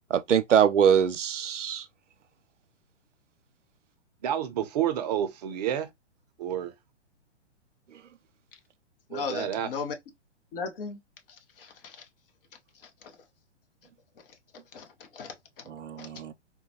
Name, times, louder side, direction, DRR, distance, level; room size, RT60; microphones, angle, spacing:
voice 1, 0.1-1.9 15.7-16.3, right 8 dB, 90° right, 0.5 m, -23 dB
voice 2, 4.2-5.9 6.4-6.7 9.1-9.7, right 10 dB, 35° right, 0.6 m, -29 dB
voice 3, 9.1-9.9 10.5-11.0 11.3-12.1 12.7-13.2 14.2-15.7 16.0-16.1, left 5 dB, 50° left, 1.0 m, -38 dB
3.7 x 2.2 x 2.8 m
figure-of-eight pair, 120°, 35 cm